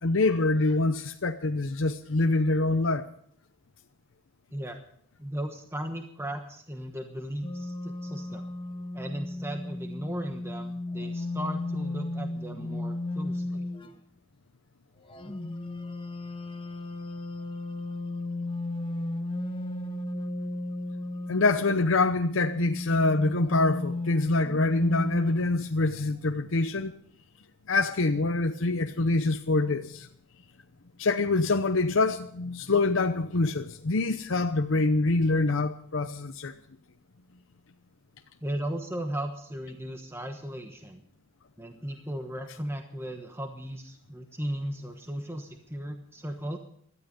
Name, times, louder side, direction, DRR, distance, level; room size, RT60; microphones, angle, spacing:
voice 1, 0.0-3.1 21.3-26.9 27.7-30.1 31.0-36.6, left 3 dB, 65° left, 0.8 m, -25 dB
voice 2, 5.2-8.4 8.9-13.7 38.4-41.0 41.6-46.6, right 1 dB, 10° right, 1.1 m, -36 dB
sound 1, 7.4-13.9 15.1-25.3, left 2 dB, 25° left, 1.2 m, -35 dB
17.5 x 13.0 x 5.4 m
head